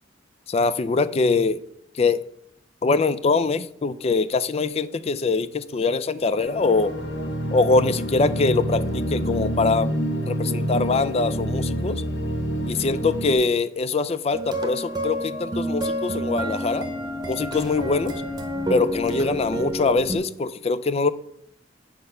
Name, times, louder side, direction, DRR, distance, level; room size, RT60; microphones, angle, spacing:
voice 1, 0.5-1.6 2.0-2.2 2.8-6.9 7.5-9.9 10.3-12.0 12.7-16.9 17.3-18.2 18.7-21.1, left 3 dB, 30° left, 0.3 m, -23 dB
sound 1, 6.4-13.3, equal, 60° left, 1.2 m, -27 dB
sound 2, 14.3-20.2, equal, 20° right, 0.9 m, -29 dB
6.8 x 5.3 x 5.5 m
head